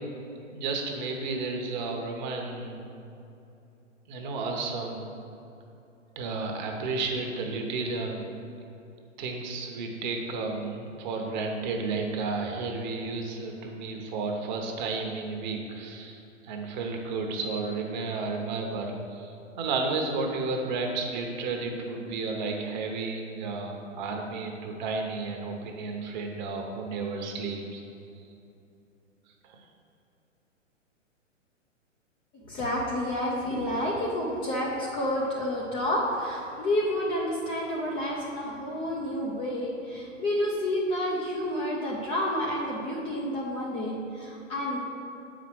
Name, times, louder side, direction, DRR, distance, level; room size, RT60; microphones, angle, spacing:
voice 1, 0.5-2.8 4.1-5.1 6.1-8.3 9.2-27.8 29.4-29.6, right 3 dB, 35° right, 2 dB, 1.1 m, -32 dB
voice 2, 32.5-44.8, left 1 dB, 15° left, -3 dB, 0.6 m, -29 dB
7.6 x 5.0 x 6.2 m, 2.8 s
figure-of-eight pair, 115°, 38 cm